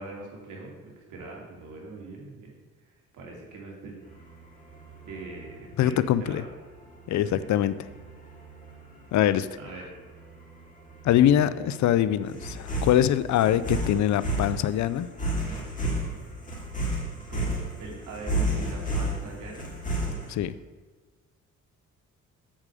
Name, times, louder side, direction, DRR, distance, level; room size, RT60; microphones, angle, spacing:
voice 1, 0.0-2.6 3.1-4.0 5.0-6.4 7.3-7.5 9.6-9.8 17.3-19.7, right 3 dB, 80° right, -1 dB, 2.7 m, -42 dB
sound 1, 4.1-20.3, right 1 dB, 25° left, 2.8 m, -33 dB
voice 2, 5.8-6.4 7.1-7.7 9.1-9.5 11.0-15.1 20.3-20.5, left 11 dB, 70° left, 15 dB, 0.5 m, -23 dB
8.8 x 4.8 x 6.8 m, 1.4 s
cardioid pair, 90°, 30 cm